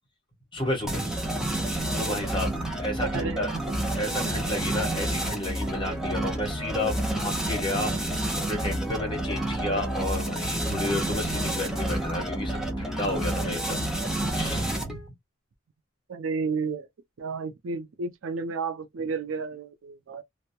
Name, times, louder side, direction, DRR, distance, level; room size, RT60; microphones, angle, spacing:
voice 1, 0.5-1.0 1.9-3.5 3.9-13.9 14.3-15.0, left 1 dB, 25° left, 1.0 m, -32 dB
sound 1, 0.9-15.1, right 1 dB, ahead, 0.6 m, -29 dB
voice 2, 3.0-3.8 4.1-4.3 16.1-16.9 17.2-20.2, right 4 dB, 70° right, 0.4 m, -32 dB
2.2 x 2.1 x 2.7 m
head